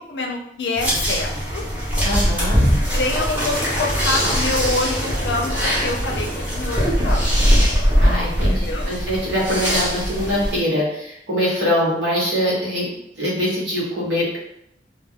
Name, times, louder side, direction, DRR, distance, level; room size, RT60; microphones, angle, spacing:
voice 1, 0.1-1.6 2.9-7.4 8.5-8.9, left 2 dB, 70° left, 2 dB, 0.5 m, -26 dB
sound 1, 0.8-10.6, equal, 10° right, 0.8 m, -21 dB
voice 2, 2.0-2.6 8.0-12.9 13.2-14.4, equal, 85° right, -5 dB, 1.2 m, -23 dB
2.2 x 2.2 x 3.5 m, 0.75 s
head